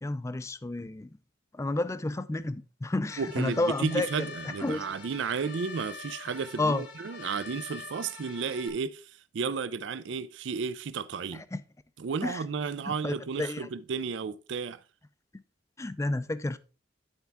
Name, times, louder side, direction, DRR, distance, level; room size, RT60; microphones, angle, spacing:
voice 1, 0.0-1.1 1.5-4.1 4.6-4.9 6.6-6.8 11.3-11.6 12.2-12.4 12.9-13.7 15.8-16.6, left 2 dB, 15° left, 0.4 m, -31 dB
sound 1, 3.1-8.7, left 4 dB, 70° left, 1.3 m, -45 dB
voice 2, 3.2-11.4 12.0-14.8, right 5 dB, 70° right, 0.4 m, -33 dB
10.5 x 4.6 x 3.5 m
head